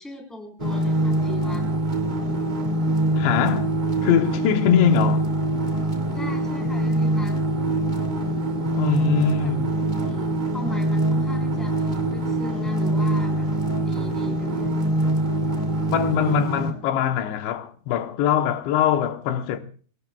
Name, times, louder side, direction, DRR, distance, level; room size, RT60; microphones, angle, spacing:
voice 1, 0.0-1.6 6.1-7.4 9.4-13.5 13.8-14.7, left 1 dB, ahead, 3.3 m, -39 dB
sound 1, 0.6-16.7, right 1 dB, 15° right, 1.6 m, -24 dB
voice 2, 3.2-5.3 8.7-9.8 15.9-19.6, left 9 dB, 85° left, 3.3 m, -22 dB
26.5 x 18.5 x 2.3 m
omnidirectional pair, 5.0 m